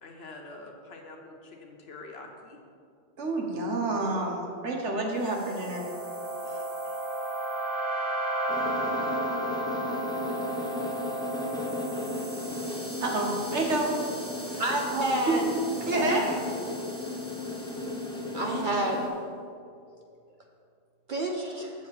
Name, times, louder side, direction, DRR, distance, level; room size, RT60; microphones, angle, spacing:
voice 1, 0.0-2.6, left 2 dB, 60° left, 2 dB, 1.2 m, -45 dB
voice 2, 3.2-5.8 6.5-6.6 13.0-14.7 15.3-15.4 15.8-16.4, right 2 dB, 70° right, 0 dB, 1.5 m, -29 dB
sound 1, 5.2-18.6, right 1 dB, 35° right, 2.5 m, -35 dB
sound 2, 8.5-19.1, left 2 dB, 5° left, 0.6 m, -35 dB
voice 3, 14.6-15.4 15.9-16.1 17.6-17.7 18.3-19.1 21.1-21.7, right 1 dB, 50° right, 1 dB, 0.7 m, -29 dB
7.3 x 6.9 x 4.8 m, 2.4 s
omnidirectional pair, 1.2 m